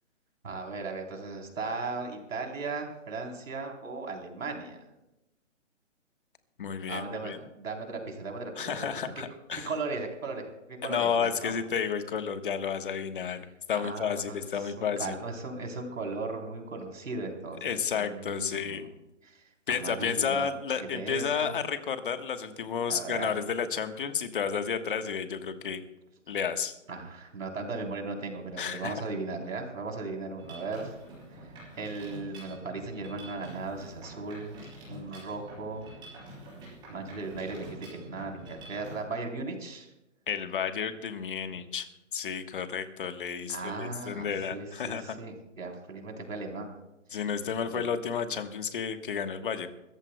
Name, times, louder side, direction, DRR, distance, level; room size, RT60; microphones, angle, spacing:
voice 1, 0.4-4.8 6.9-8.9 9.5-11.5 13.7-18.9 19.2-20.5 20.8-21.6 22.9-23.3 26.9-31.0 31.3-34.6 34.9-35.9 36.9-39.9 43.5-46.8 47.1-47.2 47.6-47.9, right 3 dB, 85° right, 2 dB, 3.6 m, -37 dB
voice 2, 6.6-7.4 8.6-9.7 10.8-13.4 13.7-15.2 17.6-18.8 19.7-25.8 26.3-26.8 28.6-29.0 40.3-41.9 42.1-45.2 47.1-49.7, left 7 dB, 40° left, 9 dB, 1.2 m, -31 dB
Mechanisms, 30.4-39.0, right 1 dB, 10° right, 5.0 m, -47 dB
24.5 x 14.5 x 2.2 m, 0.95 s
hypercardioid pair, 165°, 38 cm